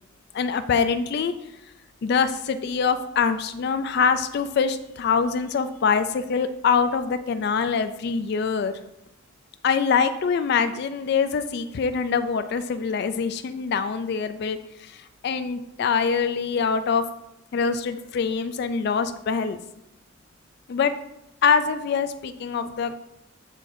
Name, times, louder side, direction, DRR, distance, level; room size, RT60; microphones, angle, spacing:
voice 1, 0.3-1.3 2.0-8.7 9.6-17.0 17.5-19.6 20.7-20.9 21.4-22.9, left 6 dB, 55° left, 10 dB, 0.3 m, -24 dB
7.4 x 6.6 x 2.6 m, 0.87 s
head